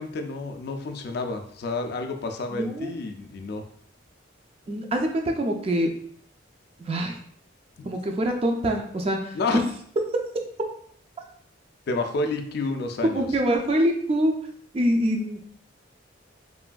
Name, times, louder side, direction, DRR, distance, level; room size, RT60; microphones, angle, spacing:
voice 1, 0.0-3.6 7.8-7.9 9.3-9.6 11.9-13.3, left 3 dB, 50° left, 5 dB, 0.3 m, -30 dB
voice 2, 2.5-2.9 4.7-5.9 6.8-7.2 7.9-9.6 13.0-14.4 14.7-15.4, equal, 30° right, 2 dB, 0.3 m, -24 dB
3.1 x 2.5 x 2.2 m, 0.62 s
head